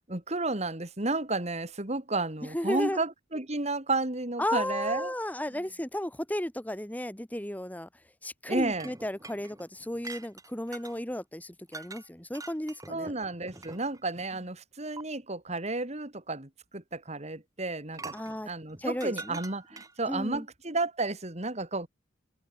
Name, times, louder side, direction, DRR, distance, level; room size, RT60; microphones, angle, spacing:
voice 1, 0.1-5.1 8.5-8.9 12.9-18.2 18.5-21.9, right 2 dB, 35° right, 2.7 m, -32 dB
voice 2, 2.5-3.0 4.4-7.9 8.2-13.1 18.1-18.5 18.8-19.4 20.1-20.5, left 1 dB, 10° left, 1.9 m, -34 dB
sound 1, 8.8-11.0 11.7-12.1 12.4-14.1 15.0-15.1 17.9-20.1, right 3 dB, 20° right, 6.2 m, -45 dB
open air
head